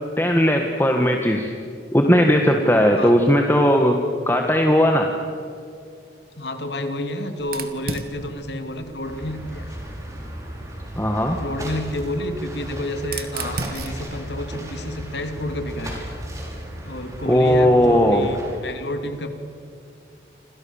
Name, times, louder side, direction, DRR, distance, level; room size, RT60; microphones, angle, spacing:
voice 1, 0.2-1.5 1.9-4.0 4.3-5.1 10.9-11.4 17.2-18.3, equal, 10° left, 2 dB, 1.6 m, -17 dB
voice 2, 3.0-3.5 6.4-9.7 11.3-16.0 16.8-19.3, left 1 dB, 75° left, 7 dB, 2.8 m, -30 dB
Fire, 7.4-10.2 11.3-15.5, right 4 dB, 55° right, 2.1 m, -37 dB
sound 1, 9.0-18.5, equal, 20° right, 6.0 m, -35 dB
29.5 x 26.5 x 7.3 m, 2.3 s
head